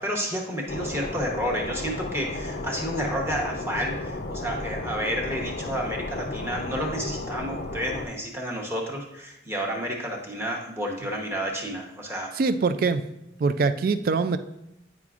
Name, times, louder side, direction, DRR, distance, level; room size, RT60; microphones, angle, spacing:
voice 1, 0.0-12.4, equal, 15° right, 0 dB, 0.9 m, -30 dB
sound 1, 0.7-8.1, left 2 dB, 50° left, 0.5 m, -33 dB
voice 2, 12.3-13.0 13.4-14.4, right 4 dB, 45° right, 12 dB, 0.3 m, -23 dB
9.5 x 4.9 x 2.4 m, 0.83 s
head